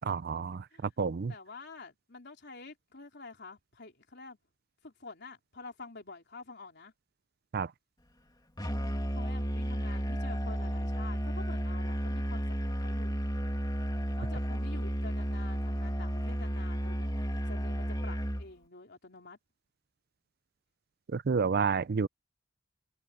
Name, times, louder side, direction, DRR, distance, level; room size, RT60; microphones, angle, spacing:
voice 1, 0.0-1.3 7.5-7.7 21.1-22.1, right 5 dB, 50° right, 0.4 m, -30 dB
voice 2, 1.3-4.4 4.8-6.9 8.7-13.2 14.2-17.2 17.5-19.4, left 3 dB, 60° left, 3.8 m, -48 dB
Musical instrument, 8.6-18.5, equal, 20° left, 2.3 m, -32 dB
head